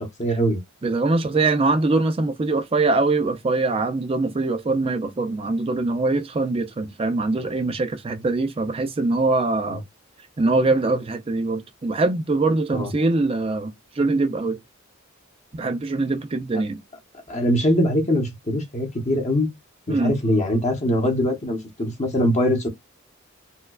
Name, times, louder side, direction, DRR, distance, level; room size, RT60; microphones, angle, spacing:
voice 1, 0.2-0.6 9.7-9.8 12.7-12.9 17.3-19.5 19.9-22.7, equal, 35° left, 1.0 m, -22 dB
voice 2, 0.8-9.8 10.4-14.6 15.6-16.8 19.9-20.1, right 3 dB, 30° right, 0.4 m, -23 dB
4.3 x 2.2 x 2.3 m
head